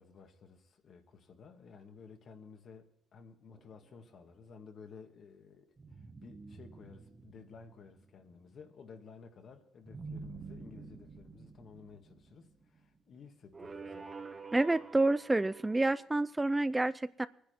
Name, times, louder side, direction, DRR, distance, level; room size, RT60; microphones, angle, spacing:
voice 1, 0.0-14.1, left 5 dB, 60° left, 1.8 m, -54 dB
sound 1, 3.5-4.5 5.8-8.4 9.8-13.0 13.5-16.1, right 4 dB, 30° right, 1.3 m, -49 dB
voice 2, 14.5-17.3, right 2 dB, 15° right, 0.4 m, -29 dB
23.0 x 10.0 x 4.4 m
cardioid pair, 90°, 0 cm